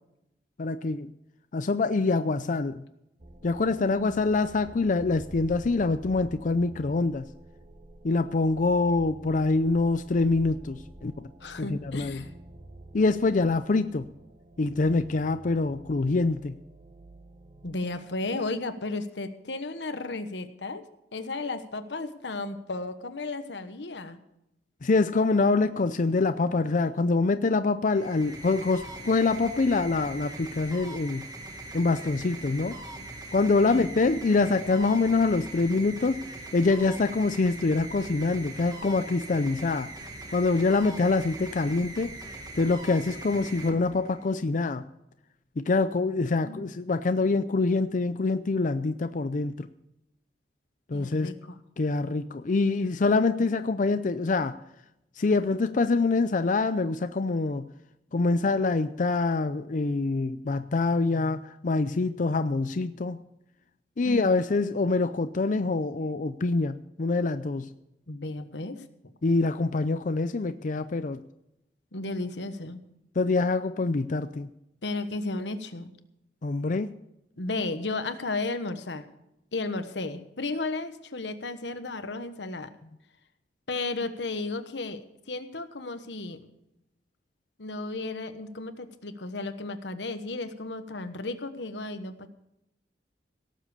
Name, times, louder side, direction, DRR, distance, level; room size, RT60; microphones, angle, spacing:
voice 1, 0.6-1.1 1.5-2.8 3.4-7.3 8.0-11.3 11.5-12.2 12.9-14.1 14.6-16.6 24.8-31.3 31.7-32.8 33.3-36.2 36.5-39.9 40.3-42.1 42.5-44.8 45.6-49.7 50.9-51.3 51.8-54.6 55.2-57.7 58.1-63.2 64.0-67.7 69.2-71.2 73.2-74.5 76.4-76.9, left 3 dB, 45° left, 11 dB, 0.5 m, -25 dB
sound 1, 3.2-18.8, right 1 dB, 40° right, 1.1 m, -49 dB
voice 2, 11.4-12.3 17.6-20.8 21.1-24.2 33.6-34.0 46.4-46.7 50.9-51.3 64.0-64.2 68.1-68.8 71.9-72.8 74.8-75.9 77.4-79.1 79.5-82.7 83.7-86.4 87.6-92.3, left 3 dB, 85° left, 10 dB, 1.2 m, -34 dB
sound 2, 27.8-44.4, right 2 dB, 25° right, 2.0 m, -42 dB
17.5 x 7.5 x 6.8 m, 0.84 s
head